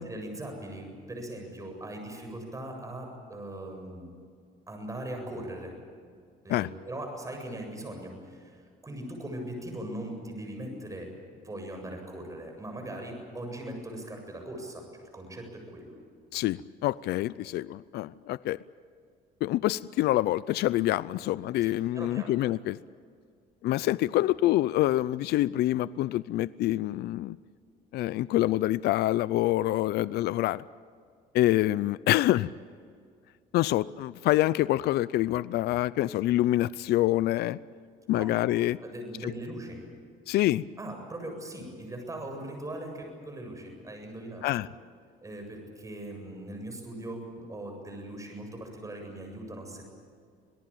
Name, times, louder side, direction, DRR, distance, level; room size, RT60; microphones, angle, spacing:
voice 1, 0.0-4.1 4.7-5.7 6.4-16.0 21.6-22.3 38.1-38.3 38.8-39.8 40.8-44.5 45.2-49.9, right 1 dB, 20° right, 3 dB, 7.7 m, -40 dB
voice 2, 16.3-18.6 19.4-22.8 23.6-27.4 27.9-30.6 31.3-32.5 33.5-37.6 38.1-38.8 39.2-39.3 40.3-40.6 44.4-44.7, left 15 dB, 75° left, 18 dB, 0.6 m, -26 dB
27.0 x 18.0 x 8.8 m, 2.2 s
cardioid pair, 110°, 17 cm